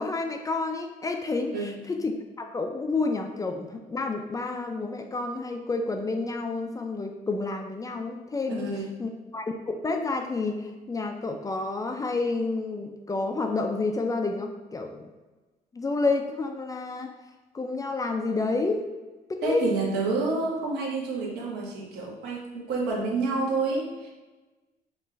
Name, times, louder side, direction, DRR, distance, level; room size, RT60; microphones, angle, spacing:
voice 1, 0.0-8.7 9.0-15.1 15.7-17.1 17.5-18.8 19.3-19.6, left 3 dB, 20° left, 4 dB, 0.4 m, -29 dB
voice 2, 8.5-8.9 19.4-24.1, right 3 dB, 75° right, -2 dB, 1.2 m, -29 dB
5.3 x 2.5 x 3.2 m, 1.2 s
cardioid pair, 110°, 17 cm